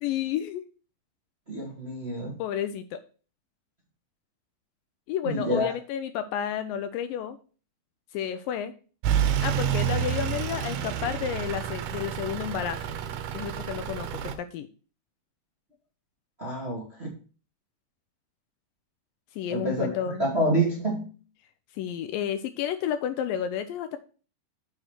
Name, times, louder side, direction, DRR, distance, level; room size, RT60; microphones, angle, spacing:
voice 1, 0.0-0.6 2.4-3.0 5.1-7.4 8.1-8.7 9.4-12.9 13.3-14.7 19.3-20.2 21.7-24.0, left 9 dB, 80° left, 10 dB, 2.1 m, -31 dB
voice 2, 1.5-2.4 5.2-5.7 16.4-17.1 19.5-19.9 20.2-21.1, right 1 dB, 30° right, -3 dB, 1.1 m, -27 dB
Truck / Idling, 9.0-14.4, right 9 dB, 90° right, 2.7 m, -29 dB
7.0 x 4.2 x 6.3 m, 0.38 s
omnidirectional pair, 4.2 m